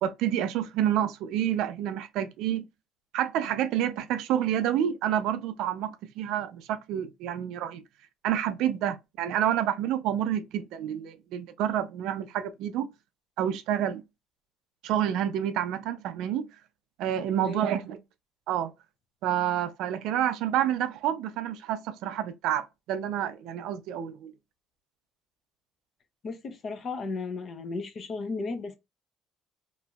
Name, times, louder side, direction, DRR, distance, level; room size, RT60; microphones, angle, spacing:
voice 1, 0.0-2.7 3.1-7.8 8.2-12.9 13.4-14.0 14.8-16.5 17.0-18.0 18.5-18.7 19.2-24.3, right 10 dB, 65° right, 0.4 m, -28 dB
voice 2, 26.2-28.8, left 3 dB, 30° left, 0.5 m, -34 dB
2.9 x 2.5 x 2.3 m
cardioid pair, 180°, 0 cm